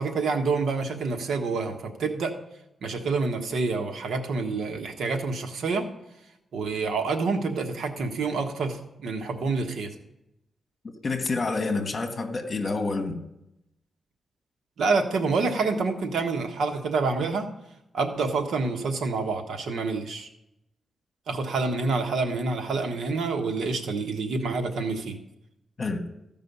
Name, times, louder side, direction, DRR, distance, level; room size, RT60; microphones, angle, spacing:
voice 1, 0.0-2.3 2.8-5.8 6.5-9.9 14.8-17.5 17.9-20.3 21.3-25.2, right 4 dB, 80° right, 5 dB, 1.3 m, -27 dB
voice 2, 11.0-13.2 25.8-26.0, left 3 dB, 35° left, 5 dB, 1.5 m, -28 dB
15.0 x 5.4 x 5.5 m, 0.85 s
wide cardioid pair, 120°, 0 cm